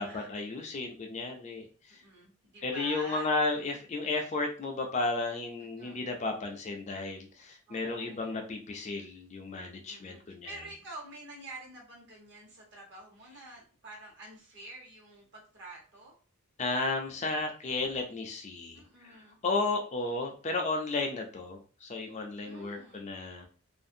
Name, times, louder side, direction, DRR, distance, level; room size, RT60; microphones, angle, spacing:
voice 1, 0.0-2.0 2.6-10.5 16.6-23.5, left 3 dB, 30° left, 3 dB, 0.4 m, -33 dB
voice 2, 2.0-3.3 5.6-6.1 7.7-8.3 9.9-16.2 18.7-19.4 22.4-23.1, right 2 dB, 50° right, -3 dB, 1.1 m, -47 dB
2.5 x 2.5 x 2.6 m, 0.38 s
head